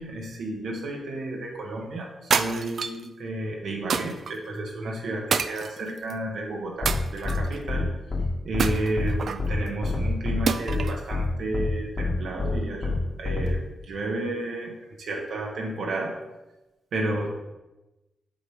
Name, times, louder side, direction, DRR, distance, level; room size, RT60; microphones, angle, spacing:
voice 1, 0.0-7.9 8.4-16.2 16.9-17.3, right 2 dB, 85° right, 0 dB, 1.5 m, -32 dB
sound 1, 2.3-3.1 3.9-4.3 5.3-6.1 6.9-7.6 8.6-9.5 10.5-11.0, right 6 dB, 65° right, 0.5 m, -27 dB
sound 2, 6.8-6.9 7.2-7.4 7.7-7.8 8.1-8.2 8.5-8.7 9.0-9.1 9.4-9.5 9.8-10.4 10.7-10.8 11.1-11.2 11.5-11.7 12.0-12.1 12.4-12.5 12.8-12.9 13.2-13.5, left 3 dB, 40° left, 1.7 m, -27 dB
7.9 x 5.6 x 4.9 m, 1.0 s
wide cardioid pair, 115°, 0 cm